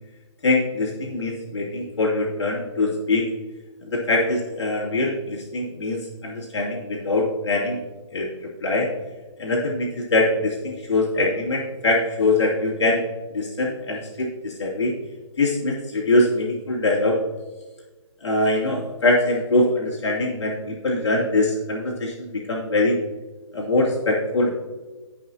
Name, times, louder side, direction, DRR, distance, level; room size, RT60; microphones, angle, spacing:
voice 1, 0.4-3.3 3.8-7.8 8.1-8.9 9.4-13.0 13.3-14.9 15.4-17.2 18.2-23.0 23.5-24.5, left 2 dB, 60° left, -3 dB, 2.6 m, -23 dB
16.5 x 5.7 x 2.8 m, 1.2 s
hypercardioid pair, 155°, 16 cm